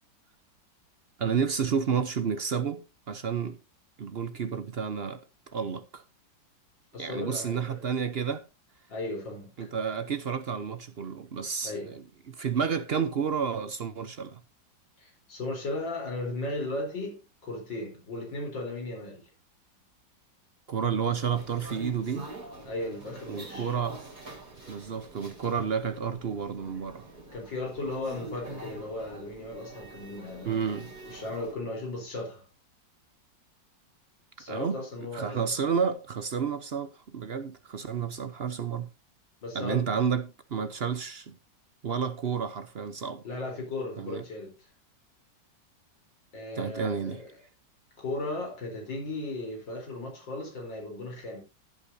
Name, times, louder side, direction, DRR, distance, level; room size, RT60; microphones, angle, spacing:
voice 1, 1.2-3.6 4.0-5.2 5.5-6.0 7.0-8.4 9.6-14.4 20.7-22.3 23.3-24.0 24.7-27.1 30.4-30.9 34.5-34.8 35.1-38.9 39.5-41.3 41.8-43.2 44.0-44.2 46.6-47.2, right 6 dB, 55° right, 0.6 m, -30 dB
voice 2, 6.9-7.8 8.9-9.7 11.6-11.9 15.0-19.3 22.6-23.7 27.3-32.4 34.4-35.6 39.4-39.8 43.2-44.7 46.3-47.3 48.0-51.4, left 2 dB, 75° left, 4.7 m, -36 dB
sound 1, 21.3-31.5, right 2 dB, 20° right, 4.9 m, -45 dB
15.0 x 8.4 x 2.7 m
omnidirectional pair, 2.0 m